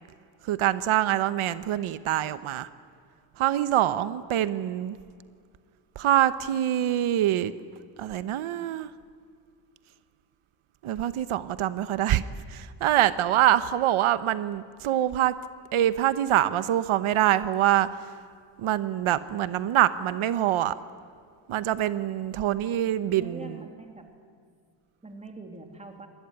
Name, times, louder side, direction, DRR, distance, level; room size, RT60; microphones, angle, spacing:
voice 1, 0.4-2.7 3.4-5.0 5.9-7.5 8.0-8.9 10.8-12.2 12.5-15.3 15.7-18.1 18.6-20.7 21.5-23.6, right 12 dB, 90° right, 14 dB, 1.0 m, -25 dB
voice 2, 23.1-24.1 25.0-26.1, right 2 dB, 15° right, 4 dB, 2.9 m, -43 dB
27.0 x 21.0 x 9.7 m, 2.2 s
wide cardioid pair, 180°, 48 cm